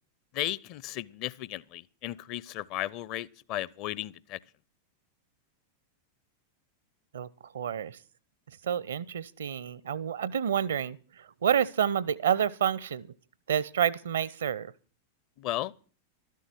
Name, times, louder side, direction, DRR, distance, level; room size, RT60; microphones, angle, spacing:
voice 1, 0.3-4.4 15.4-15.7, left 14 dB, 40° left, 0.6 m, -35 dB
voice 2, 7.5-8.0 8.6-11.0 11.4-13.1 13.5-14.7, right 9 dB, 65° right, 0.7 m, -28 dB
13.0 x 13.0 x 6.0 m
figure-of-eight pair, 90°, 0 cm